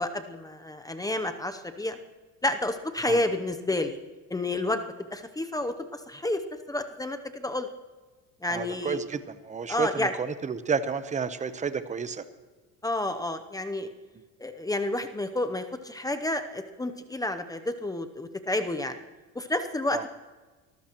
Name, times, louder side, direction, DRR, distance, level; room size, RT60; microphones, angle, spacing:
voice 1, 0.0-2.0 2.4-4.0 4.3-4.8 5.1-6.4 6.7-7.7 8.4-9.0 9.7-10.1 12.8-13.9 14.4-19.0 19.3-20.1, left 1 dB, 10° left, 8 dB, 0.7 m, -30 dB
voice 2, 8.5-12.2 19.9-20.0, right 5 dB, 20° right, 12 dB, 0.9 m, -31 dB
24.0 x 14.5 x 3.0 m, 1.3 s
cardioid pair, 125°, 36 cm